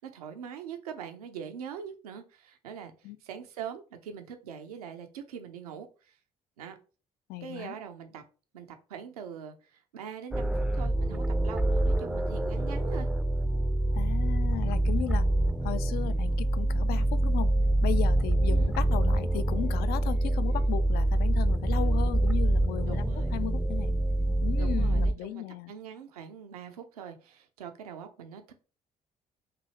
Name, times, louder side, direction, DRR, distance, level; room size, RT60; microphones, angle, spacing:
voice 1, 0.0-6.2 6.6-6.8 7.4-8.2 8.5-13.1 18.5-18.7 21.7-21.9 22.9-23.3 24.6-28.5, right 8 dB, 80° right, 0.6 m, -43 dB
voice 2, 7.3-7.7 13.9-15.3 15.6-17.5 17.8-24.0 24.4-25.7, left 14 dB, 55° left, 0.4 m, -36 dB
sound 1, 10.3-25.1, right 1 dB, 5° right, 0.5 m, -26 dB
5.9 x 2.7 x 3.0 m
figure-of-eight pair, 50°, 19 cm